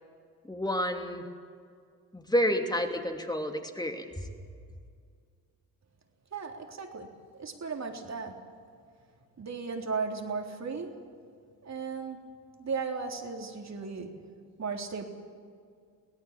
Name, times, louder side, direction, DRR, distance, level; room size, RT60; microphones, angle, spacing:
voice 1, 0.4-1.3 2.1-4.3, equal, 10° left, 4 dB, 2.9 m, -30 dB
voice 2, 6.3-7.1 7.3-8.3 9.4-10.9 11.6-12.2 12.6-14.1 14.6-15.0, right 5 dB, 35° right, 2 dB, 3.6 m, -35 dB
25.0 x 17.5 x 7.5 m, 2.2 s
hypercardioid pair, 65°, 44 cm